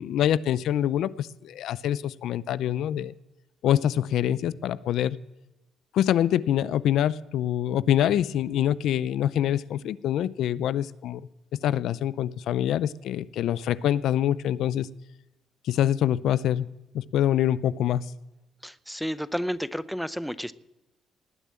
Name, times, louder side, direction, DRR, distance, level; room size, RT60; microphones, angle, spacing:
voice 1, 0.0-3.1 3.6-5.2 5.9-11.2 11.6-14.9 15.6-16.7 16.9-18.1, left 11 dB, 75° left, 18 dB, 0.5 m, -25 dB
voice 2, 18.6-20.5, equal, ahead, 15 dB, 0.6 m, -31 dB
19.0 x 6.9 x 8.8 m, 0.99 s
cardioid pair, 90°, 0 cm